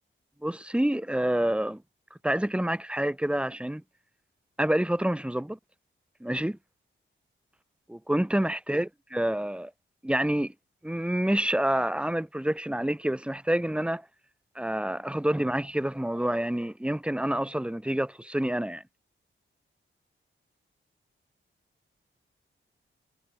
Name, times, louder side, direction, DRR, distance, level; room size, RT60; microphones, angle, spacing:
voice 1, 0.4-1.8 2.2-3.8 4.6-5.6 6.2-6.6 7.9-9.7 10.0-10.5 10.8-14.0 14.5-18.8, right 1 dB, 5° right, 6.1 m, -28 dB
wide cardioid pair, 170°, 21 cm